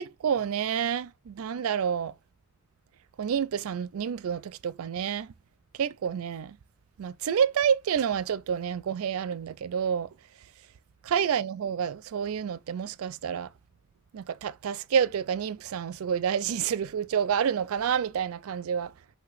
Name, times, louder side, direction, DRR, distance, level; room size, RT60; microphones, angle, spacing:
voice 1, 0.0-2.1 3.2-5.3 5.8-6.6 7.0-10.1 11.1-13.5 14.1-18.9, right 7 dB, 80° right, 0.4 m, -28 dB
5.9 x 2.9 x 3.1 m
head